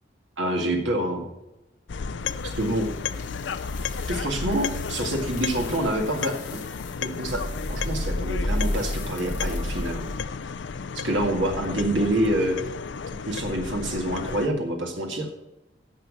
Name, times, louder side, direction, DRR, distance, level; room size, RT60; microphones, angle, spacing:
voice 1, 0.4-1.2 2.4-2.9 4.1-6.4 7.0-7.4 7.7-10.0 11.0-12.6 13.3-15.3, right 1 dB, 85° right, 2 dB, 2.0 m, -26 dB
sound 1, 1.9-14.5, left 5 dB, 70° left, 0.5 m, -33 dB
sound 2, 2.3-10.2, left 1 dB, 45° left, 2.4 m, -33 dB
10.5 x 7.1 x 7.5 m, 0.94 s
head